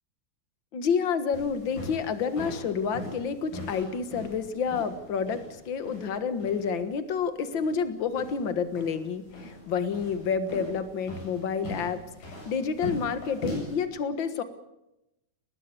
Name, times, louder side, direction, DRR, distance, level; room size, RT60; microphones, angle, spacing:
voice 1, 0.7-14.4, left 6 dB, 55° left, 10 dB, 1.4 m, -29 dB
sound 1, 1.3-13.8, left 1 dB, 85° left, 10.0 m, -41 dB
21.5 x 19.5 x 6.8 m, 0.88 s
omnidirectional pair, 4.1 m